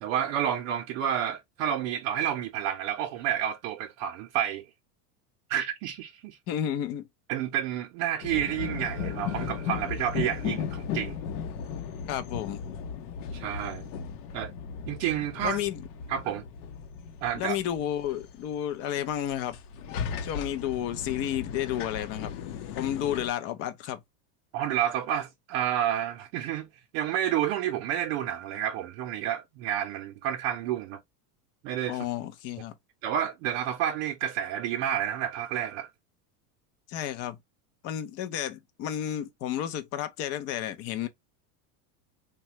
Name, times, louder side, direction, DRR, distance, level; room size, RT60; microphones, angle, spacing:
voice 1, 0.0-4.6 5.5-6.4 7.3-11.2 13.3-13.9 14.3-14.5 14.9-15.6 16.1-16.4 17.2-17.6 24.5-26.7 26.9-31.0 31.6-32.0 33.0-35.9, right 10 dB, 60° right, 0.6 m, -30 dB
voice 2, 6.5-7.1 12.0-12.6 15.4-15.8 17.3-19.6 20.2-22.3 22.8-24.0 31.9-32.7 36.9-37.4 37.8-41.1, left 11 dB, 35° left, 0.4 m, -31 dB
sound 1, 8.2-23.3, left 7 dB, 70° left, 0.7 m, -36 dB
3.1 x 2.2 x 2.7 m
supercardioid pair, 140°, 46 cm